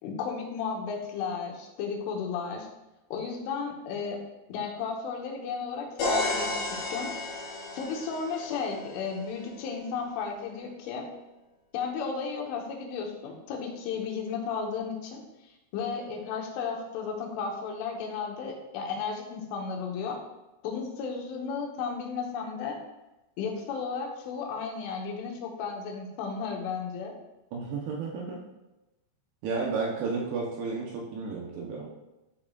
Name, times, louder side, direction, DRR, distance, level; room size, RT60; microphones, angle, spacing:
voice 1, 0.0-2.7 3.1-4.2 4.5-7.1 7.7-11.1 11.7-15.2 15.7-20.2 20.6-22.8 23.4-27.1, left 5 dB, 90° left, 1 dB, 3.5 m, -34 dB
sound 1, 6.0-9.8, left 2 dB, 65° left, 3.9 m, -33 dB
voice 2, 27.5-28.4 29.4-31.9, right 4 dB, 75° right, -1 dB, 2.5 m, -32 dB
12.0 x 4.9 x 2.3 m, 0.99 s
omnidirectional pair, 5.4 m